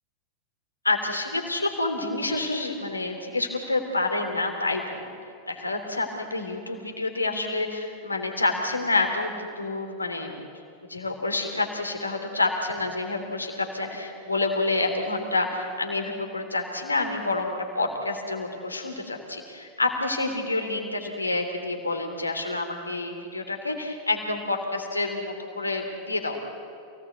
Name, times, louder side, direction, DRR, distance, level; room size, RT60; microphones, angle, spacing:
voice 1, 0.8-5.0 5.5-10.4 10.9-26.5, left 2 dB, 80° left, 4 dB, 3.4 m, -28 dB
28.0 x 18.5 x 8.3 m, 2.4 s
figure-of-eight pair, 90°, 0 cm